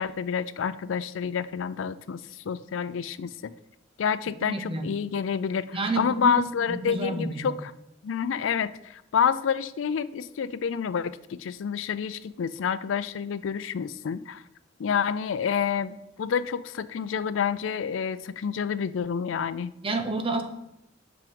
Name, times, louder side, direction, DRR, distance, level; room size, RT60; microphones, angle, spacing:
voice 1, 0.0-3.5 4.0-7.7 8.0-14.4 14.8-19.7, left 7 dB, 90° left, 15 dB, 0.4 m, -28 dB
voice 2, 4.4-4.9 5.7-6.4 6.7-7.6 19.8-20.4, right 3 dB, 30° right, 7 dB, 0.8 m, -29 dB
6.0 x 5.8 x 5.2 m, 0.85 s
head